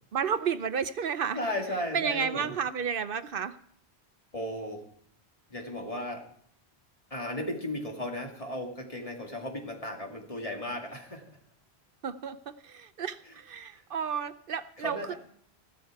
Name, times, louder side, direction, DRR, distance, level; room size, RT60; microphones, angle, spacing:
voice 1, 0.1-1.4 1.9-3.6 12.0-15.1, right 7 dB, 60° right, 13 dB, 0.8 m, -32 dB
voice 2, 1.3-2.5 4.3-4.8 5.5-6.2 7.1-11.3 13.2-13.3 13.8-13.9 14.8-15.2, left 1 dB, 35° left, 1 dB, 2.3 m, -35 dB
15.0 x 12.5 x 4.7 m, 0.64 s
omnidirectional pair, 1.1 m